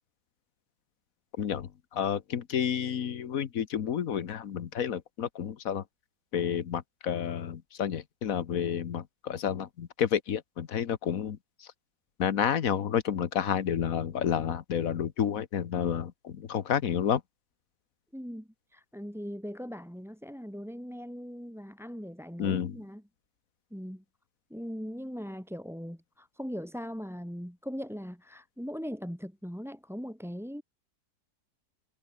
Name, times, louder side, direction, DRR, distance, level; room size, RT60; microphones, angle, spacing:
voice 1, 1.4-5.8 6.3-11.4 12.2-17.2 22.4-22.8, left 8 dB, 60° left, 1.5 m, -30 dB
voice 2, 18.1-23.0 23.7-24.0 24.5-30.6, equal, ahead, 6.2 m, -40 dB
omnidirectional pair, 1.7 m